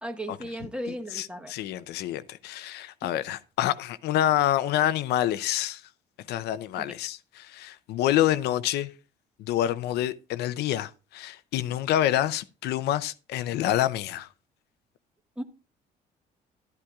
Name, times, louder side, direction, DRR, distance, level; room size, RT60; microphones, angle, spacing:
voice 1, 0.0-1.5 3.0-3.1 6.8-6.9 15.4-15.5, equal, 5° right, 1.1 m, -36 dB
voice 2, 1.1-5.8 6.3-8.9 9.5-14.3, left 12 dB, 75° left, 0.6 m, -27 dB
12.0 x 11.5 x 2.4 m
cardioid pair, 110°, 17 cm